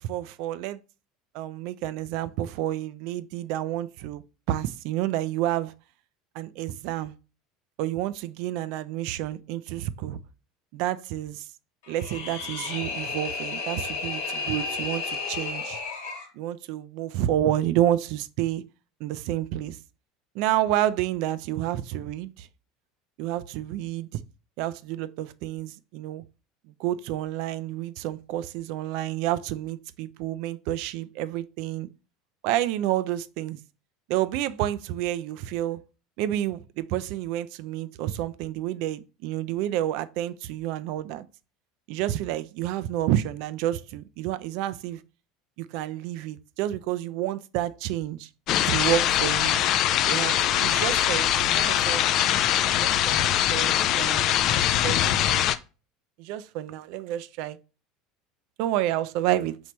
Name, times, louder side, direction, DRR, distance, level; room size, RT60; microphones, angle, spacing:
voice 1, 0.0-0.8 1.3-5.7 6.3-7.1 7.8-10.2 10.7-11.5 11.9-15.8 16.3-18.6 19.0-19.8 20.3-22.5 23.2-24.2 24.6-26.2 26.8-31.9 32.4-33.6 34.1-35.8 36.2-41.3 41.9-45.0 45.6-48.3 48.7-49.6 50.1-52.0 52.5-54.3 54.8-55.5 56.2-57.6 58.6-59.6, right 13 dB, 65° right, 0.3 m, -29 dB
sound 1, 11.8-16.3, left 4 dB, 85° left, 1.2 m, -32 dB
sound 2, 48.5-55.6, left 11 dB, 55° left, 0.3 m, -22 dB
4.4 x 3.2 x 2.9 m
supercardioid pair, 95°, 0 cm